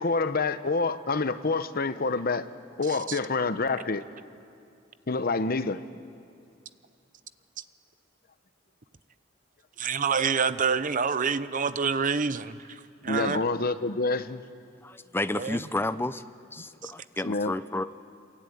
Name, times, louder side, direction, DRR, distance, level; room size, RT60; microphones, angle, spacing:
voice 1, 0.0-2.5 2.8-4.1 5.1-5.8 13.1-14.4 17.2-17.5, left 3 dB, 50° left, 12 dB, 0.9 m, -27 dB
voice 2, 2.9-3.2 9.8-13.4 15.4-15.7 16.8-16.9, right 6 dB, 45° right, 13 dB, 0.8 m, -28 dB
voice 3, 14.8-16.2 16.5-17.8, left 2 dB, 10° left, 12 dB, 0.6 m, -31 dB
27.0 x 23.5 x 9.4 m, 2.4 s
head